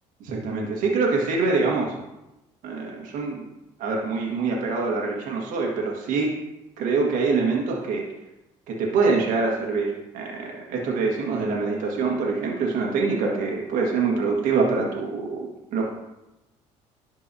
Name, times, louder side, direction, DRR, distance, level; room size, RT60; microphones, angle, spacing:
voice 1, 0.2-1.9 2.6-3.4 3.8-6.3 6.8-8.0 8.7-15.9, right 4 dB, 70° right, -1 dB, 1.6 m, -25 dB
11.5 x 4.6 x 2.8 m, 0.93 s
supercardioid pair, 80°, 14 cm